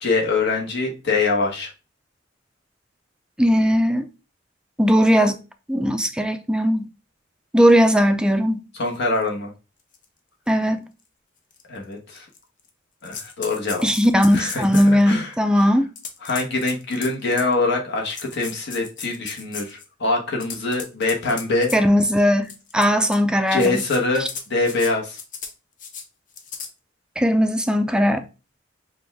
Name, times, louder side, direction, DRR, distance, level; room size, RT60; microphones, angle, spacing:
voice 1, 0.0-1.7 8.8-9.5 11.7-12.3 13.0-13.9 14.3-15.3 16.2-21.7 23.5-25.2, left 3 dB, 60° left, 1.1 m, -24 dB
voice 2, 3.4-4.1 4.8-5.4 5.7-6.9 7.5-8.6 10.5-10.8 13.8-15.9 21.7-23.8 27.2-28.2, equal, 5° right, 0.4 m, -18 dB
sound 1, 9.2-9.3 9.9-10.1 10.5-10.6 11.5-11.6 12.2-12.7 13.0-15.0 16.0-17.5 18.1-19.9 20.3-21.8 22.4-23.2 23.5-24.9 25.2-25.5 25.8-26.0 26.3-26.7, left 6 dB, 40° left, 0.6 m, -36 dB
5.0 x 2.3 x 3.4 m
head